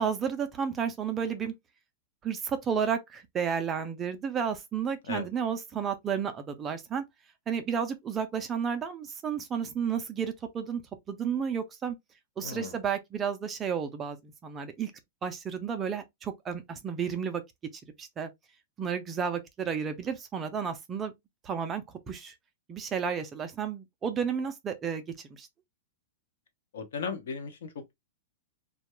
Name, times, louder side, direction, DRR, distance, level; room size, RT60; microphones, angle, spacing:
voice 1, 0.0-1.5 2.2-7.0 7.5-10.8 11.1-12.0 12.4-14.9 15.2-17.4 18.0-18.3 18.8-21.1 21.4-22.3 22.7-25.0 25.3-25.5, right 7 dB, 15° right, 0.3 m, -32 dB
voice 2, 12.4-12.7 26.7-27.9, left 5 dB, 70° left, 0.8 m, -36 dB
2.3 x 2.1 x 2.9 m
supercardioid pair, 170°, 0 cm